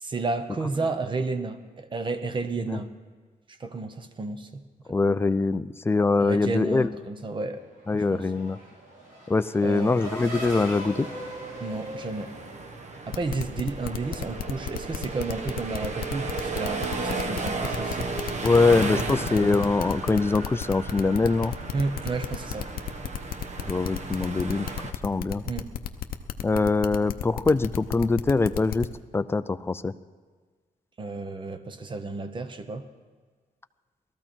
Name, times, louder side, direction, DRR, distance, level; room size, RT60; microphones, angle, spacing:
voice 1, 0.0-2.9 3.6-4.6 6.2-7.6 7.9-8.3 9.6-10.0 11.6-12.3 13.1-18.1 18.9-19.1 19.4-19.6 21.7-22.7 25.4-25.7 31.0-32.9, right 3 dB, 35° right, 9 dB, 0.9 m, -32 dB
voice 2, 4.9-6.9 7.9-8.6 9.3-11.1 18.4-21.5 23.7-24.7 25.0-25.4 26.4-28.9 29.1-29.9, left 3 dB, 15° left, 13 dB, 0.4 m, -23 dB
Race car auto racing / Accelerating revving vroom, 7.3-13.4, right 1 dB, 85° right, 4.1 m, -40 dB
sound 1, 10.0-24.9, right 3 dB, 50° right, 1.0 m, -35 dB
sound 2, 13.1-28.9, left 10 dB, 85° left, 0.7 m, -33 dB
18.5 x 13.5 x 4.5 m, 1.5 s
wide cardioid pair, 145°, 15 cm